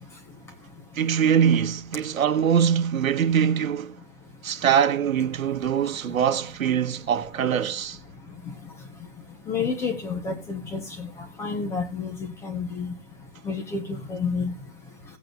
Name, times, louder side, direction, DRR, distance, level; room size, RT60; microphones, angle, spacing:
voice 1, 0.9-4.0 4.4-8.0, right 8 dB, 90° right, 1.4 m, -23 dB
voice 2, 9.5-11.1 11.4-12.9 13.4-14.5, left 5 dB, 5° left, 0.8 m, -29 dB
17.5 x 8.6 x 2.4 m
hypercardioid pair, 165°, 40 cm